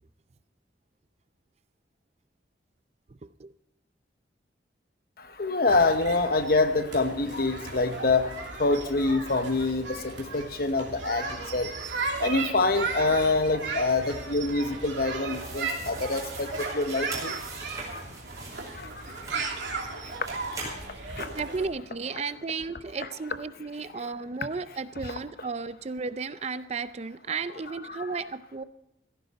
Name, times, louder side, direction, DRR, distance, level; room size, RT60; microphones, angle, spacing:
voice 1, 3.1-3.5 21.3-28.6, right 4 dB, 35° right, 14 dB, 0.5 m, -34 dB
voice 2, 5.2-11.8 12.2-17.3 17.8-18.1 18.7-21.4 23.0-23.1 24.0-24.1 25.0-25.1 27.9-28.2, left 3 dB, 55° left, 9 dB, 1.0 m, -27 dB
sound 1, 5.7-21.7, right 4 dB, 85° right, 2.9 m, -36 dB
sound 2, 15.3-19.7 20.2-21.3, right 3 dB, 20° right, 5.1 m, -42 dB
16.5 x 14.5 x 4.1 m, 0.89 s
head